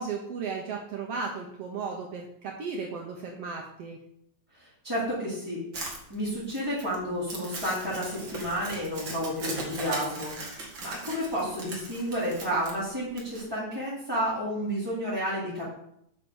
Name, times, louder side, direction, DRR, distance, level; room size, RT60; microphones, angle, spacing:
voice 1, 0.0-4.0, right 5 dB, 80° right, 1 dB, 1.4 m, -35 dB
voice 2, 4.6-10.3 10.8-15.6, equal, 5° right, -12 dB, 4.0 m, -31 dB
Crumpling crinkling, 5.7-13.4, right 2 dB, 40° right, 2.2 m, -39 dB
9.6 x 6.0 x 6.4 m, 0.75 s
omnidirectional pair, 4.3 m